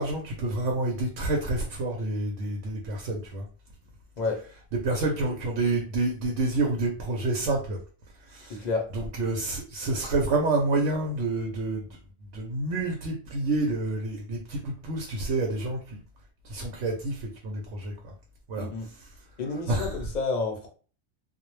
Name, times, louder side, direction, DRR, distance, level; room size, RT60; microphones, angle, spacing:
voice 1, 0.0-3.4 4.8-7.8 8.3-8.6 8.9-11.9 12.3-16.0 16.5-18.1 18.5-18.7 19.7-19.9, right 2 dB, 80° right, 0.9 m, -28 dB
voice 2, 8.5-8.9 18.6-18.9 19.4-20.7, left 3 dB, 45° left, 0.6 m, -30 dB
2.3 x 2.0 x 3.0 m
omnidirectional pair, 1.3 m